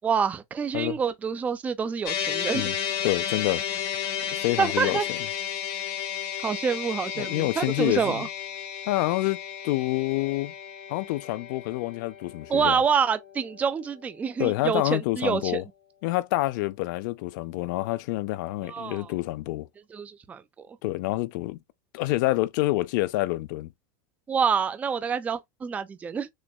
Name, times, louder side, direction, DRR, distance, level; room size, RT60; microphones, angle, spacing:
voice 1, 0.0-2.7 4.6-5.0 6.4-8.3 12.5-15.6 18.6-19.1 19.9-20.4 24.3-26.3, right 6 dB, 15° right, 0.3 m, -27 dB
sound 1, 2.0-14.5, left 9 dB, 80° left, 1.4 m, -33 dB
voice 2, 3.0-3.6 4.2-5.2 7.2-8.2 8.9-10.5 10.9-12.8 14.4-15.6 16.0-19.7 20.8-21.6 21.9-23.7, left 18 dB, 60° left, 0.4 m, -27 dB
6.2 x 2.1 x 2.2 m
supercardioid pair, 145°, 12 cm